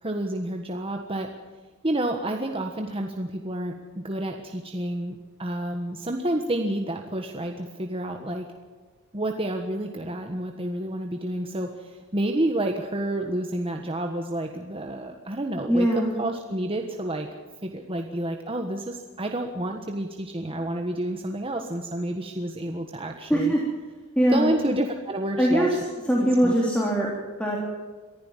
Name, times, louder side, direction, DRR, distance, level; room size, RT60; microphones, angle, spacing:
voice 1, 0.0-1.3 1.8-8.5 9.1-17.3 17.6-23.5 24.3-25.8 26.2-26.5, right 1 dB, 25° right, 3 dB, 1.4 m, -29 dB
voice 2, 15.7-16.1 23.3-23.6 24.2-24.5 25.4-25.7 26.1-27.1 27.4-27.6, equal, 5° left, -3 dB, 3.5 m, -21 dB
23.5 x 15.0 x 7.4 m, 1.4 s
head